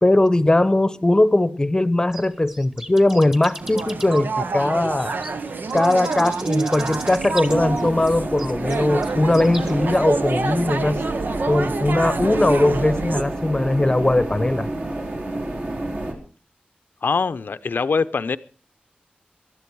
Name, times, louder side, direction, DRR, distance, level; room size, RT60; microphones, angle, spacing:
voice 1, 0.0-5.1 5.7-11.0 11.5-14.7, left 2 dB, 25° left, 0.9 m, -19 dB
sound 1, 2.1-9.9, right 1 dB, 20° right, 1.8 m, -38 dB
sound 2, 3.6-13.2, right 4 dB, 75° right, 0.9 m, -27 dB
sound 3, 7.5-16.1, right 1 dB, 55° right, 4.1 m, -29 dB
voice 2, 17.0-18.4, left 5 dB, 85° left, 0.7 m, -23 dB
19.0 x 12.5 x 4.7 m
wide cardioid pair, 95°, 3 cm